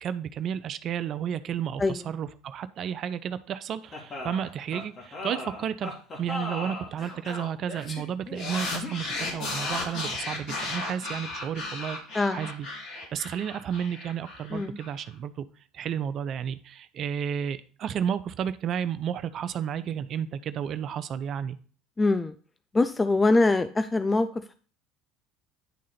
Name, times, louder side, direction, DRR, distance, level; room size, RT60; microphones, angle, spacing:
voice 1, 0.0-5.9 6.2-15.4 15.7-21.6, right 8 dB, 50° right, 13 dB, 0.6 m, -32 dB
sound 1, 3.9-10.2, left 2 dB, 40° left, 2.6 m, -38 dB
sound 2, 8.4-14.9, left 3 dB, 70° left, 3.1 m, -35 dB
voice 2, 22.0-22.3 22.7-24.3, left 2 dB, 20° left, 11 dB, 0.4 m, -23 dB
10.5 x 3.7 x 4.2 m, 0.42 s
hypercardioid pair, 80°, 0 cm